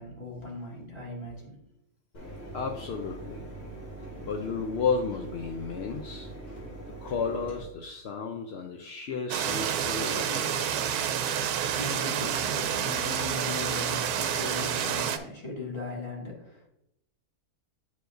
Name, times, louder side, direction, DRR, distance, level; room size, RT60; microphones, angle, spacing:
voice 1, 0.0-1.6 11.1-16.7, left 3 dB, 20° left, -5 dB, 2.2 m, -39 dB
Mechanisms, 2.1-7.6, right 2 dB, 85° left, 2.8 m, -42 dB
voice 2, 2.5-3.5 4.2-6.3 7.0-10.7, left 5 dB, 65° left, 4 dB, 0.6 m, -33 dB
sound 1, 9.3-15.2, right 9 dB, 90° right, 1.1 m, -29 dB
10.0 x 4.8 x 2.6 m, 0.82 s
omnidirectional pair, 1.6 m